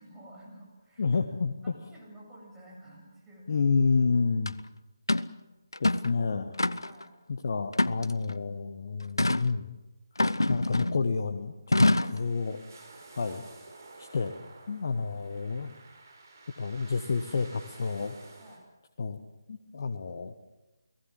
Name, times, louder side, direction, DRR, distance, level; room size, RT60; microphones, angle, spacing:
voice 1, 0.0-1.2 1.6-3.5 4.1-4.4 6.7-7.1 12.0-12.2 13.2-13.5 14.8-15.0 18.4-18.6, right 1 dB, 10° right, -4 dB, 7.8 m, -52 dB
voice 2, 1.0-1.7 3.5-4.5 5.8-6.6 7.3-9.8 10.5-12.6 13.1-13.4 14.0-14.4 14.7-15.7 16.6-18.2 19.0-19.2 19.5-20.3, left 4 dB, 45° left, 7 dB, 1.3 m, -29 dB
sound 1, 4.5-4.6 5.1-5.3 5.7-6.1 6.6-7.0 7.7-8.4 9.2-9.5 10.2-11.1 11.7-12.2, left 2 dB, 80° left, 0.9 m, -25 dB
sound 2, 11.9-18.6, right 3 dB, 50° right, 6.2 m, -52 dB
29.5 x 19.0 x 7.5 m, 1.1 s
figure-of-eight pair, 150°, 2 cm